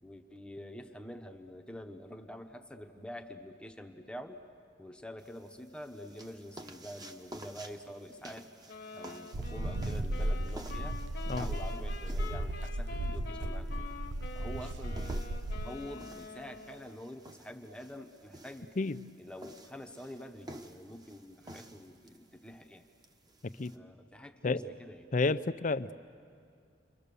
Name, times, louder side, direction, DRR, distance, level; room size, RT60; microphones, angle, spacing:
voice 1, 0.0-4.4 4.8-8.5 8.9-13.9 14.3-18.7 19.2-22.8 23.7-25.1, left 1 dB, 5° left, 5 dB, 0.9 m, -47 dB
sound 1, 5.2-23.8, right 1 dB, 20° right, 1.1 m, -52 dB
sound 2, 8.7-17.0, left 4 dB, 60° left, 1.4 m, -47 dB
sound 3, 9.3-15.8, right 1 dB, 90° right, 0.7 m, -35 dB
voice 2, 25.1-25.9, left 3 dB, 45° left, 13 dB, 0.6 m, -30 dB
30.0 x 23.5 x 6.9 m, 2.3 s
head